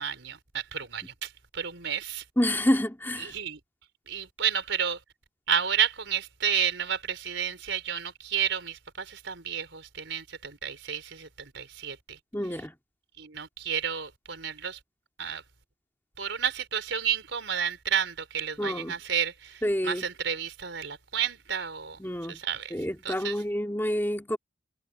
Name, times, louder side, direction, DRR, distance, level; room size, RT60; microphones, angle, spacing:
voice 1, 0.0-2.2 3.2-3.6 4.1-5.0 5.5-12.2 13.2-14.8 15.2-15.4 16.2-22.0 22.3-22.7 23.0-23.4, right 8 dB, 75° right, 4.1 m, -31 dB
voice 2, 2.4-3.3 12.3-12.7 18.6-18.9 19.6-20.0 22.0-22.4 22.7-24.4, equal, 10° left, 2.3 m, -28 dB
head